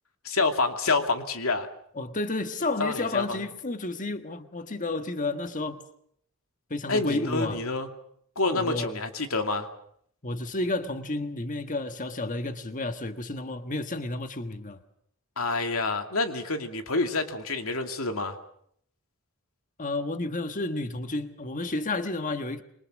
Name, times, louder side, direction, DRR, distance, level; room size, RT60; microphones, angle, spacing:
voice 1, 0.2-1.7 2.8-3.4 6.9-7.9 8.4-9.7 15.4-18.4, left 3 dB, 80° left, 2.6 m, -27 dB
voice 2, 1.9-5.8 6.7-7.6 8.5-8.9 10.2-14.8 19.8-22.6, left 2 dB, 40° left, 1.5 m, -31 dB
27.0 x 24.0 x 6.2 m
head